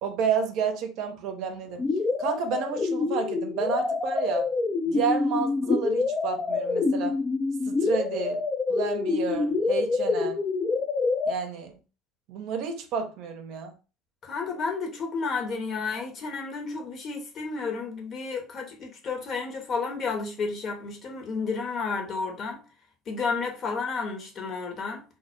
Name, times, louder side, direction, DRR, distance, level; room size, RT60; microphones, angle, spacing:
voice 1, 0.0-1.8 2.2-4.5 4.9-7.2 7.7-8.4 8.7-10.4 11.3-11.7 12.3-13.7, right 6 dB, 60° right, 0.5 m, -30 dB
sound 1, 1.8-11.3, left 4 dB, 30° left, 0.4 m, -26 dB
voice 2, 14.2-22.6 23.1-25.0, left 4 dB, 45° left, 0.8 m, -31 dB
2.1 x 2.0 x 3.0 m
hypercardioid pair, 70°, 0 cm